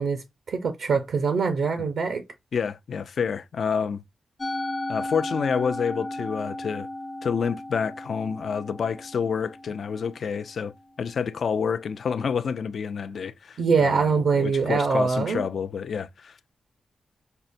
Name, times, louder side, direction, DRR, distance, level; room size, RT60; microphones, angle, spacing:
voice 1, 0.0-2.2 13.6-15.4, right 5 dB, 75° right, 0.6 m, -23 dB
voice 2, 2.5-4.0 4.9-6.9 7.2-10.7 11.0-16.5, left 6 dB, 65° left, 0.3 m, -28 dB
Musical instrument, 4.4-10.8, left 1 dB, 30° left, 0.7 m, -35 dB
5.4 x 2.0 x 2.5 m
cardioid pair, 90°, 0 cm